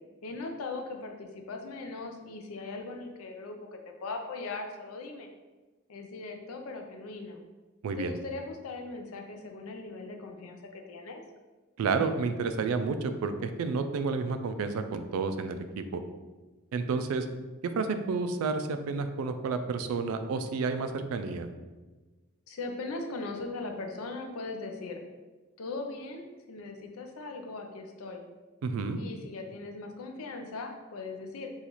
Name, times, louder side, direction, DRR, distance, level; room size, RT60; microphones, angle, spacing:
voice 1, 0.2-5.3 5.9-7.4 8.0-11.2 22.5-25.0 25.6-28.2 28.9-31.5, left 3 dB, 75° left, 4 dB, 0.5 m, -39 dB
voice 2, 7.8-8.2 11.8-16.0 16.7-17.3 17.6-21.5 28.6-29.0, right 4 dB, 70° right, 9 dB, 0.3 m, -30 dB
2.9 x 2.4 x 4.0 m, 1.2 s
head